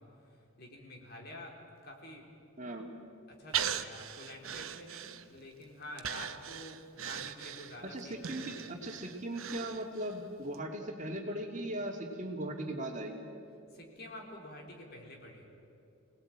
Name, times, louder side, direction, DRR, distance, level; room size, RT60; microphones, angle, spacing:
voice 1, 0.0-1.6 1.8-2.3 3.3-8.5 13.7-15.5, left 1 dB, 50° left, 0 dB, 3.8 m, -48 dB
voice 2, 2.6-2.9 7.8-13.3, right 1 dB, 35° right, 1 dB, 2.6 m, -38 dB
Breathing, 3.5-5.5 6.0-10.2 10.5-10.6, right 9 dB, 85° right, 1.0 m, -39 dB
25.5 x 19.0 x 8.9 m, 2.8 s
head